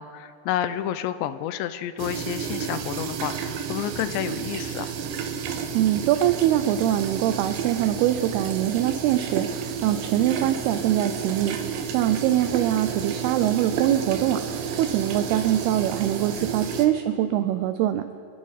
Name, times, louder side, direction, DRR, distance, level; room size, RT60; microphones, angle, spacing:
voice 1, 0.0-4.9 16.4-16.5, left 11 dB, 85° left, 12 dB, 2.8 m, -30 dB
sound 1, 2.0-16.9, right 7 dB, 70° right, 2.3 m, -31 dB
voice 2, 5.7-18.0, right 12 dB, 85° right, 9 dB, 2.3 m, -23 dB
26.5 x 10.0 x 4.1 m, 2.4 s
omnidirectional pair, 5.1 m